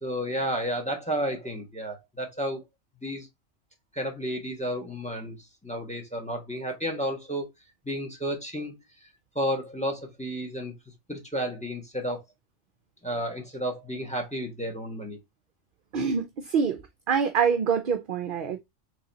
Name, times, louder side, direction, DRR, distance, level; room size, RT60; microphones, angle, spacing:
voice 1, 0.0-2.6 3.0-3.3 3.9-5.4 5.6-7.5 7.8-8.8 9.3-10.7 11.1-12.2 13.0-15.2, equal, 5° left, 1.2 m, -32 dB
voice 2, 15.9-16.8 17.1-18.6, right 6 dB, 55° right, 0.6 m, -25 dB
3.9 x 3.2 x 3.9 m
omnidirectional pair, 1.3 m